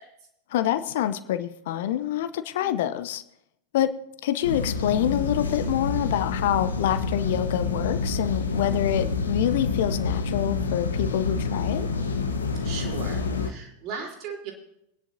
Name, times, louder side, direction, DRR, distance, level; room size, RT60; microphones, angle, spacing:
voice 1, 0.5-3.2 3.7-3.9 4.2-11.9, left 11 dB, 55° left, 12 dB, 0.6 m, -26 dB
voice 2, 2.6-2.9 12.6-14.5, right 5 dB, 40° right, 0 dB, 3.6 m, -37 dB
sound 1, 4.4-13.5, left 4 dB, 75° left, 1.1 m, -28 dB
23.0 x 10.0 x 2.7 m, 0.79 s
figure-of-eight pair, 90°, 0 cm